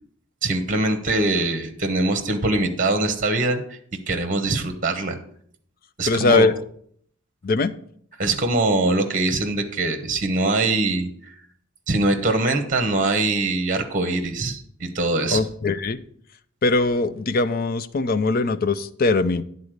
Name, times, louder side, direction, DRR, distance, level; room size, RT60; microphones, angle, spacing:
voice 1, 0.4-3.8 4.1-5.2 6.0-6.5 8.2-11.3 11.9-15.4, right 2 dB, 40° right, 7 dB, 1.0 m, -23 dB
voice 2, 6.1-6.6 7.4-7.7 15.3-16.0 16.6-19.4, left 3 dB, 45° left, 12 dB, 0.5 m, -21 dB
9.6 x 4.0 x 6.4 m, 0.62 s
head